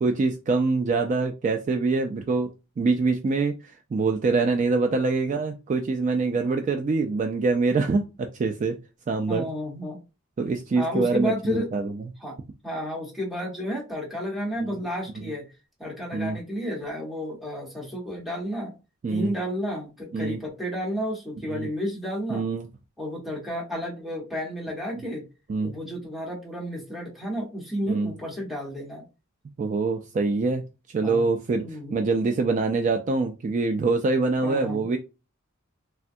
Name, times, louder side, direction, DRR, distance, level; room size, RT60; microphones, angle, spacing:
voice 1, 0.0-2.5 2.8-8.8 9.1-9.4 10.4-11.9 15.2-15.3 16.1-16.4 19.0-19.3 20.1-20.4 21.5-21.7 22.3-22.7 25.5-25.7 27.9-28.1 29.6-30.6 30.9-35.0, right 3 dB, 35° right, 4 dB, 0.3 m, -25 dB
voice 2, 9.2-10.0 10.7-11.7 12.2-12.4 12.6-15.4 15.8-18.7 19.1-22.4 23.0-25.3 25.6-29.0 31.0-31.2 31.6-32.0 34.4-34.9, equal, ahead, -3 dB, 1.0 m, -31 dB
3.3 x 2.2 x 2.6 m, 0.28 s
head